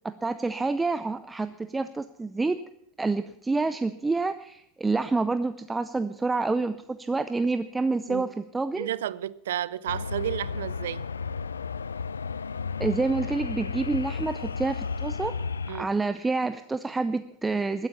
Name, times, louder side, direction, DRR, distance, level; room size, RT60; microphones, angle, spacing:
voice 1, 0.0-2.6 3.0-8.9 12.8-15.3 15.7-17.9, right 3 dB, 15° right, 0.6 m, -28 dB
voice 2, 8.8-11.0 15.7-15.9, right 11 dB, 75° right, 0.4 m, -32 dB
sound 1, 9.9-15.8, left 5 dB, 90° left, 0.4 m, -33 dB
14.0 x 9.8 x 7.0 m
hypercardioid pair, 85°, 0 cm